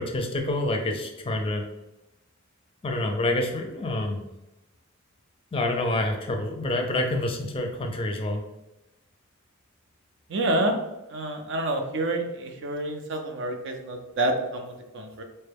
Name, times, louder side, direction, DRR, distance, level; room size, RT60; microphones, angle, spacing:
voice 1, 0.0-1.6 2.8-4.2 5.5-8.4, left 1 dB, 25° left, 3 dB, 0.5 m, -27 dB
voice 2, 10.3-10.8 11.1-15.2, right 1 dB, 60° right, 5 dB, 0.6 m, -28 dB
4.3 x 2.2 x 3.4 m, 0.95 s
head